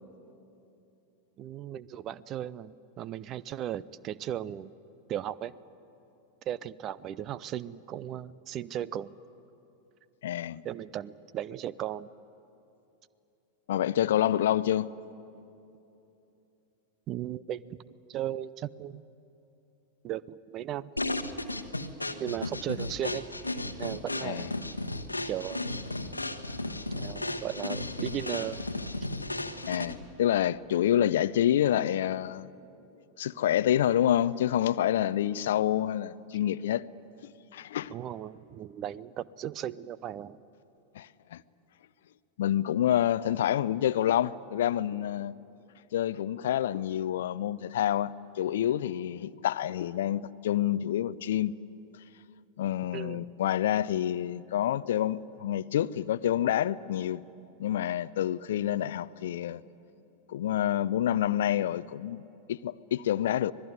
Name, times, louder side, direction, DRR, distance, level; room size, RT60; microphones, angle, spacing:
voice 1, 1.4-4.7 5.1-5.5 6.5-9.1 10.6-12.1 17.1-19.0 20.0-20.9 22.2-23.3 23.8-24.5 25.3-25.7 26.9-28.6 37.9-40.4 52.9-53.3, right 11 dB, 35° right, 0.6 m, -36 dB
voice 2, 10.2-10.6 13.7-14.9 24.2-24.5 29.7-32.5 33.2-36.8 37.5-37.9 41.0-41.4 42.4-45.3 45.9-51.5 52.6-57.2 57.6-59.6 60.3-62.2 62.5-63.5, left 11 dB, 60° left, 0.5 m, -28 dB
sound 1, 21.0-30.1, left 2 dB, 85° left, 1.1 m, -35 dB
25.5 x 20.0 x 9.5 m
figure-of-eight pair, 90°, 0 cm